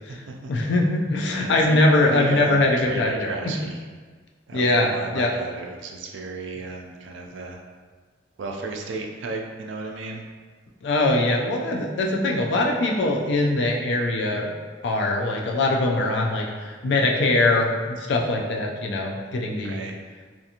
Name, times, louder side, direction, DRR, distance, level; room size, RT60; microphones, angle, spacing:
voice 1, 0.5-3.5 4.5-5.3 10.8-14.5 14.8-19.8, left 2 dB, 65° left, 0 dB, 0.4 m, -22 dB
voice 2, 1.3-3.8 4.5-7.6 8.4-10.2 19.6-19.9, right 3 dB, 75° right, 2 dB, 0.4 m, -34 dB
2.5 x 2.5 x 2.8 m, 1.5 s
head